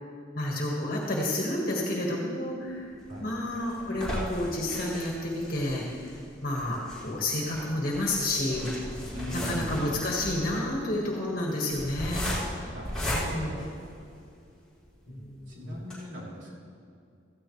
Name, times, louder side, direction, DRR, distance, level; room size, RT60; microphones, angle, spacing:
voice 1, 0.3-2.9 3.2-5.8 6.4-8.9 9.3-12.3 13.1-13.6 15.1-15.8, left 1 dB, 45° left, -3 dB, 1.8 m, -30 dB
sound 1, 3.0-14.4 14.9-15.0 15.3-15.4 15.8-15.9, equal, 5° left, 3.7 m, -36 dB
voice 2, 9.1-9.8 12.6-13.7 15.1-16.5, equal, 75° right, -5 dB, 3.5 m, -40 dB
16.5 x 14.5 x 3.3 m, 2.4 s
head